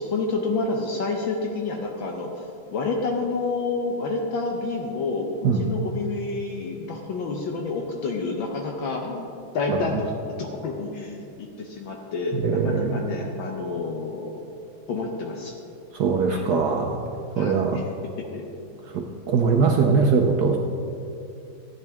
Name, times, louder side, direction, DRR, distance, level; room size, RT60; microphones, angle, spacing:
voice 1, 0.0-2.4 2.7-10.1 10.4-14.4 14.9-15.5 16.3-16.5 17.4-17.9 18.3-18.4, left 3 dB, 70° left, 1 dB, 1.5 m, -29 dB
voice 2, 12.4-13.0 16.0-17.1 17.4-17.8 18.9-20.6, right 5 dB, 65° right, 2 dB, 1.0 m, -21 dB
14.5 x 9.3 x 3.5 m, 2.6 s
omnidirectional pair, 2.3 m